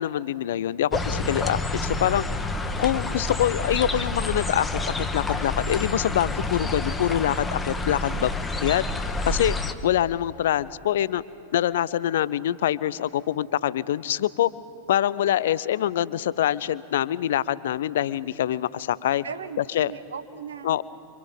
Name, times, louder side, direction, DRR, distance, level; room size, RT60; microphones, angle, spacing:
voice 1, 0.0-2.2 2.8-4.7 5.0-8.3 8.6-8.8 9.3-9.6 9.8-11.2 11.5-14.5 14.9-19.2 19.7-19.9 20.6-20.8, left 11 dB, 60° left, 19 dB, 0.6 m, -25 dB
sound 1, 0.9-9.7, left 2 dB, 10° left, 1.4 m, -28 dB
voice 2, 19.2-20.8, right 6 dB, 70° right, 9 dB, 1.2 m, -37 dB
29.0 x 24.5 x 5.4 m, 2.4 s
figure-of-eight pair, 90°, 0 cm